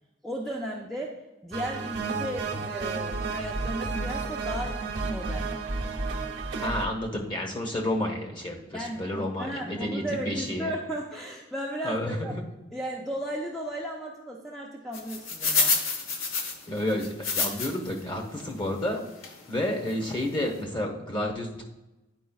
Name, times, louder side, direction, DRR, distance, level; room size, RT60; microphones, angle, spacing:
voice 1, 0.2-5.5 8.7-12.3 12.7-15.8, right 1 dB, ahead, -3 dB, 0.5 m, -35 dB
sound 1, 1.5-6.9, right 3 dB, 65° right, 0.8 m, -31 dB
voice 2, 6.6-10.7 11.8-12.4 16.7-19.0 19.5-21.6, left 1 dB, 25° left, 1 dB, 1.1 m, -30 dB
sound 2, 14.9-17.9 18.4-18.5 19.2-19.4 19.9-20.0 20.2-20.4, left 4 dB, 85° left, 1.0 m, -28 dB
10.5 x 4.9 x 2.3 m, 1.0 s
head